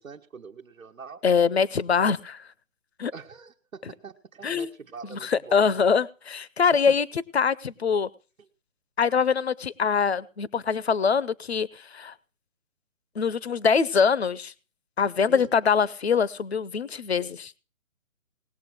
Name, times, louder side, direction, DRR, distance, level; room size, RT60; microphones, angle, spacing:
voice 1, 0.0-1.2 3.1-5.6 6.9-7.0 15.3-15.5, right 5 dB, 80° right, 1.3 m, -44 dB
voice 2, 1.2-2.4 3.0-3.1 4.4-4.7 5.1-8.1 9.0-12.1 13.2-14.5 15.0-17.5, left 6 dB, 50° left, 0.6 m, -24 dB
19.0 x 7.4 x 6.1 m
hypercardioid pair, 180°, 41 cm